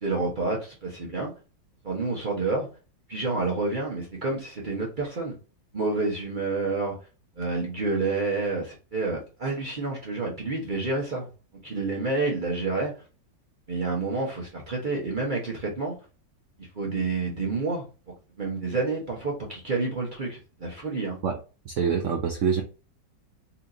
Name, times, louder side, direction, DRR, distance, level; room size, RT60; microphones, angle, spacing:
voice 1, 0.0-1.3 1.8-2.7 3.1-5.3 5.7-7.0 7.4-11.3 11.6-12.9 13.7-15.9 16.6-17.9 18.4-21.2, right 3 dB, 45° right, -3 dB, 0.7 m, -29 dB
voice 2, 21.6-22.6, right 6 dB, 90° right, 2 dB, 0.6 m, -25 dB
4.2 x 2.9 x 2.5 m, 0.33 s
omnidirectional pair, 2.0 m